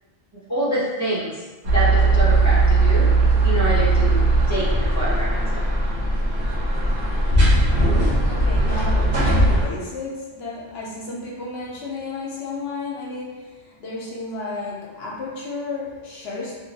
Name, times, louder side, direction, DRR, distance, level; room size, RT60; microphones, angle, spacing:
voice 1, 0.5-1.3 1.6-3.1 3.4-4.2 4.5-5.6, right 1 dB, 20° right, -9 dB, 0.5 m, -26 dB
sound 1, 1.6-9.7, right 2 dB, 75° right, 1.2 m, -18 dB
voice 2, 8.0-16.6, left 3 dB, 65° left, -3 dB, 0.8 m, -32 dB
2.8 x 2.7 x 2.7 m, 1.3 s
omnidirectional pair, 1.2 m